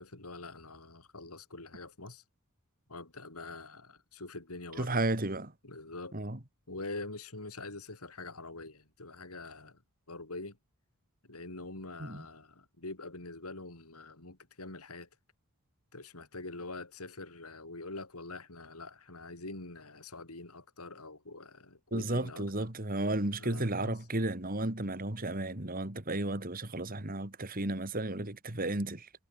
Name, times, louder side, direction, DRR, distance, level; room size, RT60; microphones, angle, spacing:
voice 1, 0.0-2.2 2.9-5.0 5.6-6.2 6.7-9.8 10.1-10.6 11.2-15.1 15.9-22.7 23.4-24.0, left 2 dB, 80° left, 4.3 m, -45 dB
voice 2, 4.8-5.5 6.1-6.4 12.0-12.3 21.9-29.1, right 2 dB, 40° right, 2.5 m, -33 dB
head